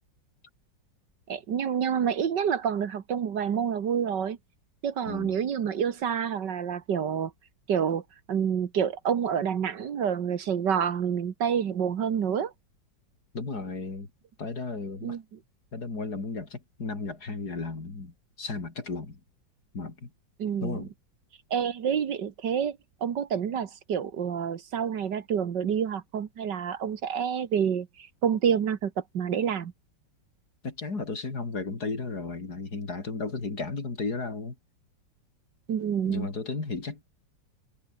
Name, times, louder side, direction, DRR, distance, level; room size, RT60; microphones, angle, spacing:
voice 1, 1.3-4.4 4.8-7.3 7.7-8.0 8.3-12.5 15.0-15.2 20.4-20.9 21.5-29.7 35.7-36.3, right 8 dB, 65° right, 2.0 m, -28 dB
voice 2, 5.1-5.4 13.3-14.1 14.4-15.2 15.7-19.2 19.7-20.1 20.6-20.9 30.6-34.6 36.1-37.0, left 3 dB, 55° left, 4.1 m, -34 dB
omnidirectional pair, 2.1 m